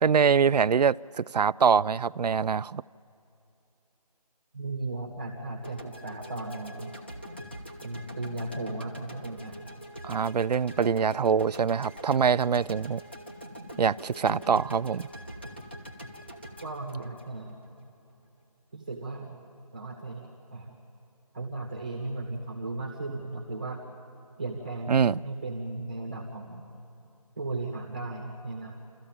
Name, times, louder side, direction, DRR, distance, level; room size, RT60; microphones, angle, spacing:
voice 1, 0.0-2.8 10.0-13.0 13.8-15.1 24.9-25.2, right 6 dB, 90° right, 18 dB, 0.4 m, -24 dB
voice 2, 4.5-6.9 7.8-9.6 16.6-17.6 18.7-19.4 19.7-20.8 21.3-23.8 24.4-26.6 27.4-28.8, right 2 dB, 10° right, 0 dB, 1.0 m, -36 dB
sound 1, 5.6-17.8, equal, 15° left, 0.8 m, -44 dB
29.0 x 13.5 x 8.8 m, 2.8 s
figure-of-eight pair, 180°, 20 cm